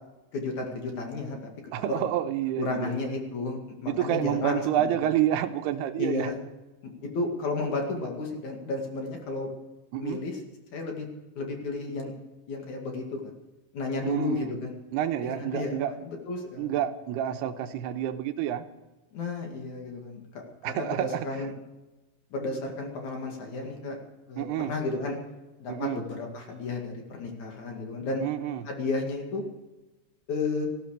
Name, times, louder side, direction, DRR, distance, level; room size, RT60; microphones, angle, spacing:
voice 1, 0.3-1.4 1.9-2.0 2.6-4.9 6.0-6.4 7.0-9.5 10.0-10.4 10.7-11.1 11.4-12.1 12.5-13.3 13.7-14.7 15.2-15.8 16.1-16.7 19.1-20.4 20.7-21.5 22.3-24.0 24.3-25.2 25.6-28.2 28.7-29.4 30.3-30.7, left 3 dB, 50° left, 2 dB, 3.2 m, -32 dB
voice 2, 1.7-3.0 3.9-6.3 9.9-10.2 14.0-14.5 14.9-15.9 16.6-18.7 20.6-21.5 24.4-24.7 25.7-26.0 28.2-28.7, right 11 dB, 90° right, 8 dB, 2.9 m, -29 dB
19.0 x 15.0 x 4.9 m, 1.1 s
omnidirectional pair, 4.7 m